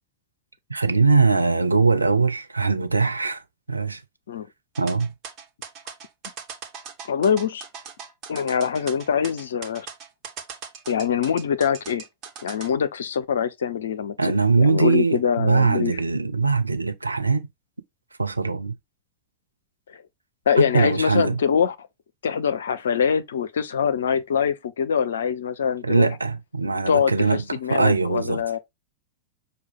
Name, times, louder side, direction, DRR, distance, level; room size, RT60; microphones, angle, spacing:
voice 1, 0.7-3.4 3.7-4.0 4.8-5.1 14.2-17.5 18.2-18.8 20.6-21.4 25.8-27.4 27.7-28.6, right 4 dB, 80° right, 0.6 m, -21 dB
sound 1, 4.7-12.7, right 6 dB, 35° right, 1.3 m, -39 dB
voice 2, 7.1-7.6 8.3-9.9 10.9-12.0 12.4-16.0 19.9-20.0 20.5-21.9 22.2-26.1 26.9-28.6, left 7 dB, 65° left, 0.5 m, -24 dB
6.1 x 2.3 x 3.5 m
figure-of-eight pair, 90°, 0 cm